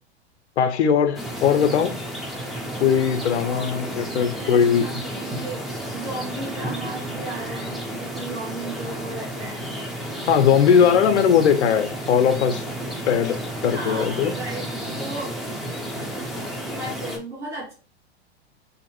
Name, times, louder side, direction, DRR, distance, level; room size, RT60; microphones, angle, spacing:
voice 1, 0.6-1.9 2.8-5.0 10.3-12.6 13.1-14.3, left 7 dB, 80° left, 0.5 m, -19 dB
sound 1, 1.2-17.2, right 1 dB, ahead, 0.4 m, -32 dB
voice 2, 3.9-5.6 5.9-9.7 13.6-15.3 16.2-16.3 16.6-17.7, right 2 dB, 90° right, 1.3 m, -35 dB
2.6 x 2.5 x 2.8 m
hypercardioid pair, 95°, 34 cm